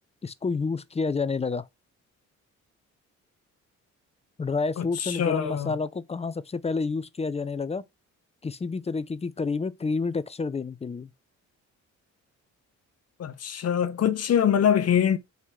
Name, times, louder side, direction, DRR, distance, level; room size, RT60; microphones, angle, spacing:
voice 1, 0.2-1.7 4.4-7.8 8.4-11.1, left 4 dB, 20° left, 0.6 m, -29 dB
voice 2, 4.8-5.7 13.2-15.2, left 9 dB, 55° left, 0.9 m, -24 dB
4.9 x 4.0 x 5.7 m
cardioid pair, 90°, 30 cm